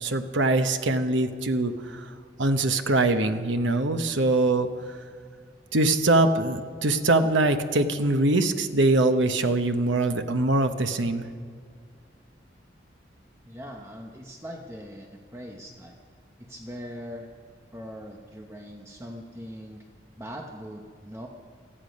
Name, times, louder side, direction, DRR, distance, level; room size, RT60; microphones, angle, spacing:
voice 1, 0.0-2.1 2.4-4.7 5.7-11.3, right 2 dB, 90° right, 7 dB, 1.0 m, -23 dB
voice 2, 13.4-16.0 16.4-17.3 17.7-19.9 20.2-21.3, equal, 15° right, 1 dB, 0.9 m, -41 dB
19.0 x 14.0 x 5.3 m, 2.1 s
head